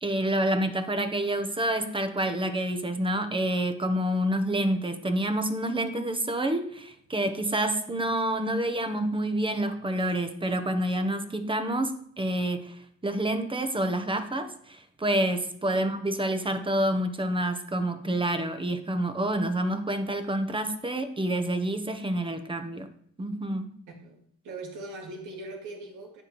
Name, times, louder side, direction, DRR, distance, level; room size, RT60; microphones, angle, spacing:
voice 1, 0.0-22.9 23.2-23.7, right 1 dB, 15° right, 9 dB, 1.0 m, -28 dB
voice 2, 23.9-26.2, right 2 dB, 85° right, -1 dB, 2.3 m, -41 dB
9.7 x 7.6 x 3.1 m, 0.64 s
cardioid pair, 90°, 30 cm